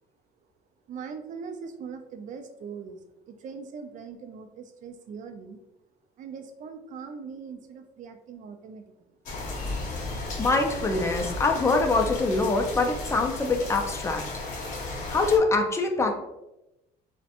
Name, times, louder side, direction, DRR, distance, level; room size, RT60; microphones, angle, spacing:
voice 1, 0.9-3.0 3.3-5.6 6.2-8.8, right 5 dB, 50° right, 6 dB, 0.4 m, -41 dB
sound 1, 9.3-15.4, left 2 dB, 50° left, 0.7 m, -34 dB
voice 2, 10.4-14.2 15.1-16.1, left 3 dB, 15° left, 3 dB, 0.4 m, -24 dB
2.4 x 2.1 x 2.8 m, 0.93 s
cardioid pair, 110°, 17 cm